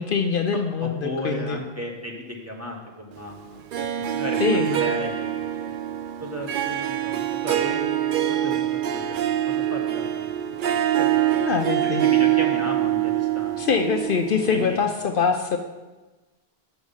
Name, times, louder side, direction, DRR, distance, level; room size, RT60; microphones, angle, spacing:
voice 1, 0.0-1.6 4.4-4.9 11.4-12.1 13.6-15.6, left 5 dB, 60° left, 5 dB, 0.8 m, -24 dB
voice 2, 0.8-5.7 6.2-8.6 8.9-9.0 9.3-11.4 11.8-13.6 14.5-14.8, left 1 dB, 15° right, -2 dB, 1.4 m, -35 dB
Harp, 3.7-14.8, right 12 dB, 60° right, 0.7 m, -24 dB
7.8 x 6.3 x 7.2 m, 1.2 s
omnidirectional pair, 1.0 m